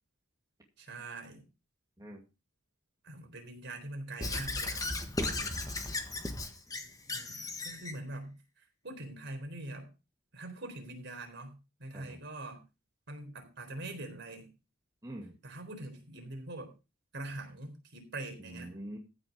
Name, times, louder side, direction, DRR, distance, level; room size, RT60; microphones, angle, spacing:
voice 1, 0.8-1.4 3.0-5.0 7.1-9.9 10.3-12.6 13.1-14.5 15.4-16.7 17.1-18.7, right 2 dB, 60° right, 4 dB, 4.0 m, -43 dB
Squeak / Writing, 4.2-8.0, left 2 dB, 20° left, 1.5 m, -36 dB
voice 2, 5.2-5.6 11.9-12.2 15.0-15.4 18.4-19.0, right 1 dB, 20° right, -1 dB, 2.3 m, -45 dB
15.0 x 6.3 x 5.2 m, 0.29 s
head